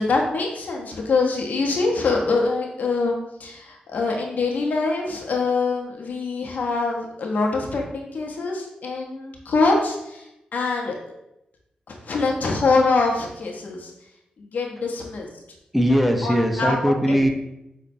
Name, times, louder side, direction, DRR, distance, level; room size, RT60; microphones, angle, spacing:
voice 1, 0.0-10.9 11.9-13.9 14.4-15.3 16.2-16.7 17.1-17.2, left 3 dB, 65° left, 0 dB, 0.6 m, -24 dB
voice 2, 15.7-17.3, equal, 5° right, 3 dB, 0.5 m, -20 dB
5.1 x 2.1 x 2.6 m, 0.87 s
cardioid pair, 80°, 3 cm